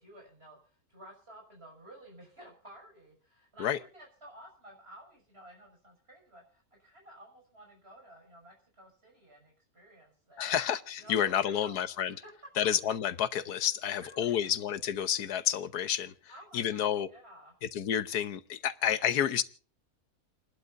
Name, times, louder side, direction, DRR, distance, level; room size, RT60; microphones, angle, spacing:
voice 1, 0.0-10.6 11.0-11.8 12.2-12.3 12.9-13.0 13.9-14.5 16.3-17.5, right 1 dB, 40° right, 1 dB, 6.5 m, -53 dB
voice 2, 10.4-12.1 12.6-16.1 16.5-17.1 17.6-19.4, left 9 dB, 90° left, 13 dB, 1.4 m, -30 dB
29.5 x 12.0 x 2.6 m, 0.40 s
omnidirectional pair, 1.6 m